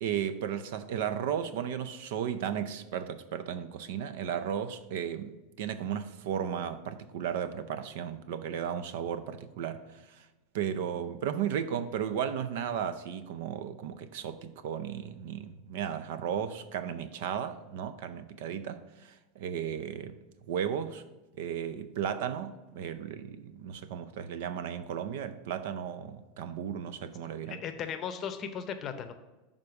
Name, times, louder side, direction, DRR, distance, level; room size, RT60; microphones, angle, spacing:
voice 1, 0.0-9.8 10.1-10.3 10.5-20.2 20.5-21.0 21.4-27.6, right 8 dB, 75° right, 0.5 m, -35 dB
voice 2, 27.5-29.1, left 7 dB, 35° left, 0.7 m, -36 dB
6.6 x 3.6 x 5.8 m
supercardioid pair, 130°, 0 cm